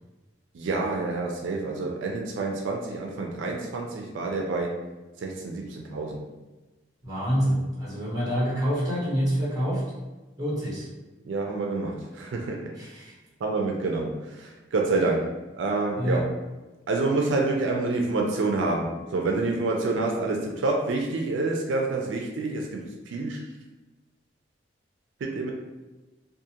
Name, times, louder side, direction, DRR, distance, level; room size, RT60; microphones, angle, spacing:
voice 1, 0.5-4.7 5.2-6.2 11.2-12.6 13.4-16.3 16.9-23.4 25.2-25.5, right 3 dB, 85° right, 0 dB, 0.4 m, -28 dB
voice 2, 7.0-9.8 10.4-10.9 12.8-13.1 16.0-16.2, equal, 20° right, -7 dB, 1.1 m, -26 dB
2.4 x 2.4 x 2.8 m, 1.2 s
head